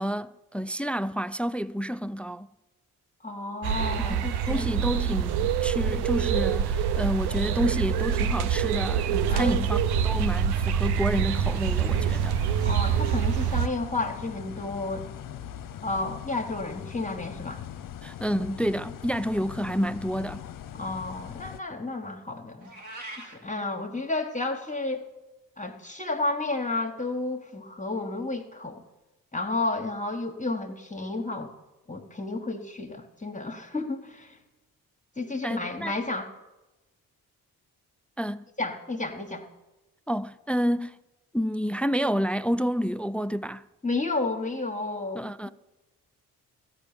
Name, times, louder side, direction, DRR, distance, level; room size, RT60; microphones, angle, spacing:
voice 1, 0.0-2.5 4.0-12.4 18.0-20.5 35.4-35.9 38.2-38.5 40.1-41.0 41.3-43.7 45.1-45.5, equal, 5° left, 0.3 m, -29 dB
voice 2, 3.2-4.7 9.3-9.6 12.6-15.1 15.8-17.6 20.7-22.7 23.2-25.1 25.6-28.8 29.3-31.5 31.9-34.4 35.2-36.3 38.6-39.4 43.8-45.3, left 2 dB, 20° left, 1.4 m, -31 dB
sound 1, 3.6-13.7, right 8 dB, 75° right, 0.7 m, -25 dB
sound 2, 11.3-21.6, left 10 dB, 55° left, 0.7 m, -41 dB
Meow, 22.6-23.4, right 1 dB, 50° right, 2.5 m, -41 dB
13.5 x 5.9 x 8.8 m
hypercardioid pair, 45°, 39 cm